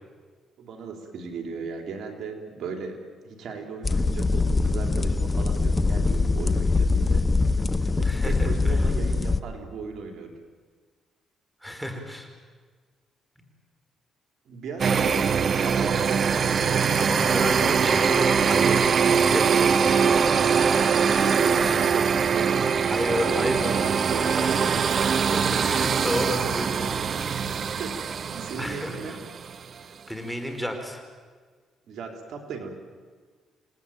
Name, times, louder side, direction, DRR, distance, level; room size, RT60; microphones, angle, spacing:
voice 1, 0.6-7.3 7.8-10.4 14.5-16.7 21.0-22.7 23.1-24.7 27.4-29.2 31.9-32.7, right 4 dB, 70° right, 4 dB, 3.8 m, -37 dB
sound 1, 3.8-9.4, left 3 dB, 20° left, 1.1 m, -23 dB
voice 2, 8.0-8.8 11.6-12.3 14.8-15.3 17.0-20.1 21.0-21.9 22.9-23.9 24.4-24.6 25.2-27.0 28.6-29.2 30.1-31.0, left 1 dB, ahead, 4 dB, 4.7 m, -32 dB
sound 2, 14.8-29.5, right 6 dB, 50° right, 0.9 m, -22 dB
28.0 x 19.0 x 9.0 m, 1.5 s
cardioid pair, 90°, 0 cm